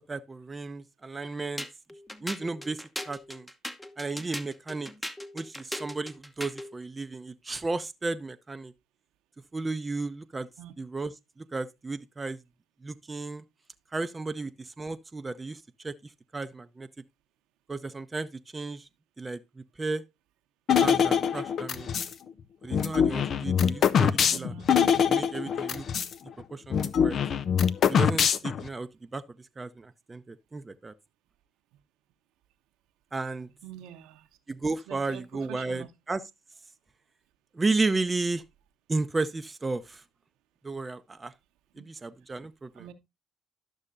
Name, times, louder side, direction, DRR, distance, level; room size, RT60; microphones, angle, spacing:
voice 1, 0.0-1.6 2.2-3.5 4.0-4.9 5.3-8.7 9.5-10.5 10.8-12.4 12.8-13.4 13.9-15.9 16.3-16.9 17.7-18.9 19.2-20.0 20.8-21.9 22.6-24.5 25.1-25.8 26.5-27.2 27.8-29.2 29.6-30.9 33.1-33.5 34.5-36.2 37.5-38.4 38.9-40.0 40.6-41.3 41.8-42.9, right 3 dB, 25° right, 0.6 m, -33 dB
sound 1, 1.6-6.7, equal, 5° left, 1.0 m, -39 dB
sound 2, 20.7-22.1 22.7-26.1 26.4-26.5 26.7-28.7, left 7 dB, 55° left, 0.6 m, -24 dB
voice 2, 24.3-24.7 33.6-34.3 34.9-35.9 41.8-41.9 42.7-42.9, right 11 dB, 75° right, 0.9 m, -45 dB
11.5 x 6.4 x 2.6 m
hypercardioid pair, 55°, 0 cm